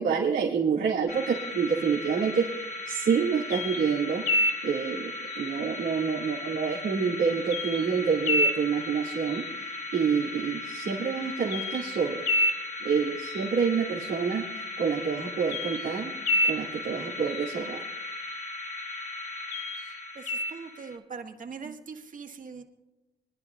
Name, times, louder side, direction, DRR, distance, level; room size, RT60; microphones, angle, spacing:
voice 1, 0.0-5.1 5.3-12.2 12.8-16.1 16.5-17.8 21.6-21.7, right 6 dB, 75° right, -7 dB, 2.8 m, -28 dB
sound 1, 1.1-21.0, left 1 dB, 55° left, 2.7 m, -32 dB
voice 2, 20.2-22.6, right 5 dB, 40° right, 4 dB, 1.9 m, -42 dB
25.0 x 11.0 x 2.6 m, 1.0 s
cardioid pair, 90°, 20 cm